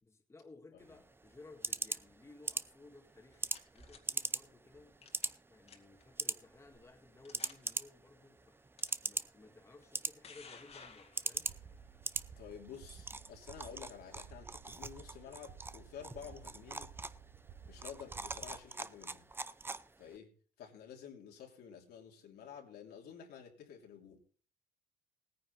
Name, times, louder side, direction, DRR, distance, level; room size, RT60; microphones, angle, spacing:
voice 1, 0.0-5.0 5.5-8.6 9.0-11.5, left 3 dB, 15° left, 1.9 m, -58 dB
sound 1, 0.8-20.2, right 3 dB, 15° right, 0.5 m, -43 dB
sound 2, 3.1-4.0 5.0-5.4 5.7-6.0 6.7-6.8 7.2-7.7 8.8-8.9 9.8-11.6, left 5 dB, 40° left, 2.2 m, -55 dB
sound 3, 11.3-18.6, right 7 dB, 55° right, 1.4 m, -55 dB
voice 2, 12.4-16.9 17.7-19.3 20.0-20.3 20.6-24.2, left 8 dB, 75° left, 2.9 m, -51 dB
17.0 x 9.6 x 4.0 m
cardioid pair, 110°, 17 cm